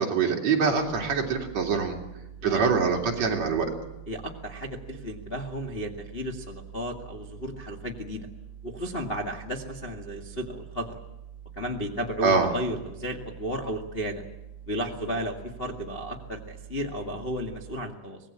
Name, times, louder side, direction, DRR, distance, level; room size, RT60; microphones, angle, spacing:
voice 1, 0.0-1.9 2.4-3.7 12.2-12.5, right 5 dB, 40° right, 1 dB, 4.0 m, -24 dB
sound 1, 0.7-17.8, right 10 dB, 65° left, 8.4 m, -46 dB
voice 2, 4.1-8.3 8.6-11.0 11.5-14.2 14.7-18.2, equal, 80° left, 1 dB, 0.5 m, -34 dB
25.0 x 20.0 x 8.8 m, 0.97 s
omnidirectional pair, 5.0 m